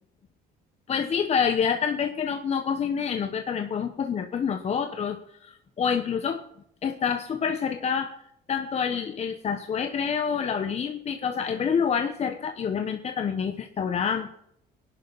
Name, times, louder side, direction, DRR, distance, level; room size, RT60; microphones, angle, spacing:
voice 1, 0.9-6.4 6.8-8.1 8.5-14.3, left 7 dB, 40° left, 7 dB, 1.0 m, -27 dB
19.0 x 11.0 x 4.1 m, 0.73 s
cardioid pair, 110°, 17 cm